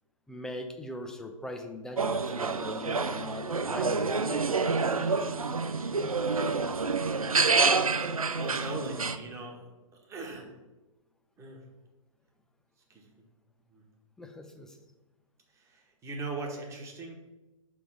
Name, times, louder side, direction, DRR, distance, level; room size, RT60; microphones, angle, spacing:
voice 1, 0.3-4.5 14.2-14.8, left 1 dB, 5° left, 5 dB, 0.5 m, -41 dB
sound 1, 2.0-9.2, right 4 dB, 85° right, 0.5 m, -28 dB
voice 2, 8.0-9.7 10.0-10.6 11.4-11.6 12.9-13.1 13.7-13.8 15.5-17.2, right 2 dB, 15° right, 0 dB, 1.2 m, -40 dB
6.0 x 3.6 x 6.0 m, 1.1 s
figure-of-eight pair, 115°, 18 cm